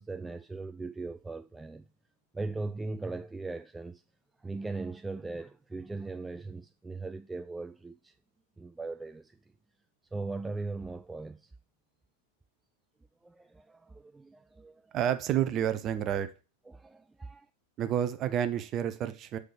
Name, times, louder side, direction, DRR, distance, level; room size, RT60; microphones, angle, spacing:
voice 1, 0.0-1.9 2.3-4.0 4.4-8.2 8.6-9.4 10.1-11.5 13.2-14.9 16.7-17.5, right 3 dB, 10° right, 0.3 m, -39 dB
voice 2, 14.9-16.3 17.8-19.4, right 10 dB, 30° right, 0.8 m, -29 dB
6.0 x 5.0 x 6.6 m
figure-of-eight pair, 90°, 0 cm